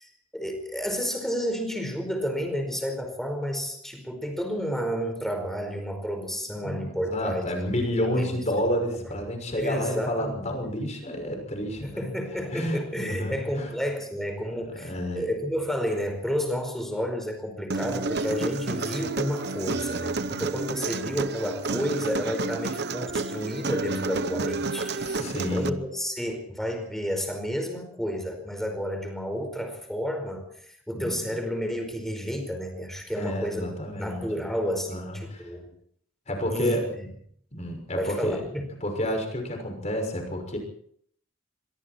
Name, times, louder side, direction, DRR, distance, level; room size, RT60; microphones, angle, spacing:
voice 1, 0.0-7.7 8.0-8.4 9.1-9.3 9.6-10.6 11.8-33.7 33.9-35.7 36.5-37.1 38.0-38.7, equal, ahead, 5 dB, 4.9 m, -31 dB
voice 2, 6.6-12.1 12.5-13.7 14.5-15.2 25.2-25.8 30.9-31.4 33.2-34.3 34.9-35.5 36.3-36.9 37.5-38.4 38.8-40.6, equal, 35° left, 3 dB, 6.1 m, -30 dB
Human voice, 17.7-25.7, right 3 dB, 50° right, 1.0 m, -30 dB
25.0 x 23.0 x 4.5 m, 0.64 s
head